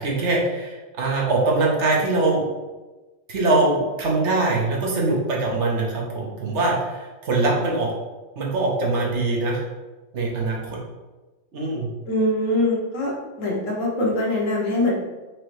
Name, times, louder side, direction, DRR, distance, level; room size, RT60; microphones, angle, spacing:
voice 1, 0.0-2.5 3.3-7.9 8.4-9.6 10.1-10.8 11.5-11.9, right 2 dB, 65° right, -3 dB, 1.2 m, -22 dB
voice 2, 12.0-13.1 13.4-14.9, left 1 dB, 90° left, -3 dB, 1.4 m, -23 dB
4.7 x 2.9 x 3.1 m, 1.2 s
omnidirectional pair, 1.3 m